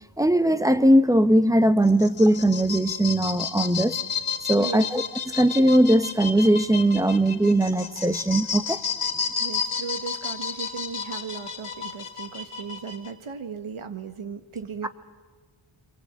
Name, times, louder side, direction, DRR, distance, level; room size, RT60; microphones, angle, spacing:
voice 1, 0.2-4.0 4.5-5.0 5.3-8.8, right 1 dB, 5° right, 12 dB, 0.8 m, -20 dB
sound 1, 1.8-13.1, left 6 dB, 90° left, 2.7 m, -32 dB
voice 2, 4.6-4.9 9.4-14.9, right 6 dB, 75° right, 9 dB, 1.8 m, -36 dB
29.0 x 23.5 x 8.3 m, 1.4 s
wide cardioid pair, 140°, 50 cm